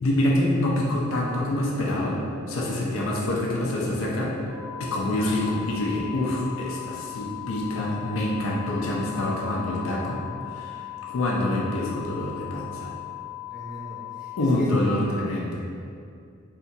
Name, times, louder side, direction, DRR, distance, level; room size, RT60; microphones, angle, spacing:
voice 1, 0.0-2.2 2.5-4.3 4.8-10.2 10.5-10.8 11.1-12.9 14.4-15.6, left 1 dB, 70° left, -3 dB, 0.4 m, -26 dB
sound 1, 4.5-14.5, left 16 dB, 25° right, 1.4 m, -38 dB
voice 2, 4.8-5.1 7.0-7.2 13.5-14.7 15.5-15.6, left 1 dB, 5° right, -11 dB, 0.8 m, -41 dB
2.8 x 2.4 x 2.6 m, 2.4 s
head